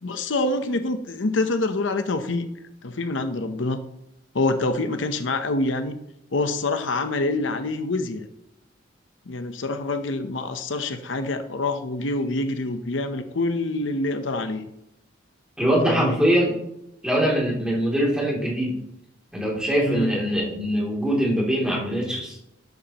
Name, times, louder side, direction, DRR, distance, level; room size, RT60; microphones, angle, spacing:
voice 1, 0.0-2.5 2.8-3.8 4.3-6.0 6.3-8.3 9.3-14.7 15.9-16.2 19.9-20.1, left 2 dB, 80° left, 8 dB, 0.8 m, -26 dB
voice 2, 15.6-16.5 17.0-18.8 19.3-22.4, equal, 5° right, -5 dB, 2.9 m, -22 dB
12.5 x 9.1 x 3.0 m, 0.83 s
head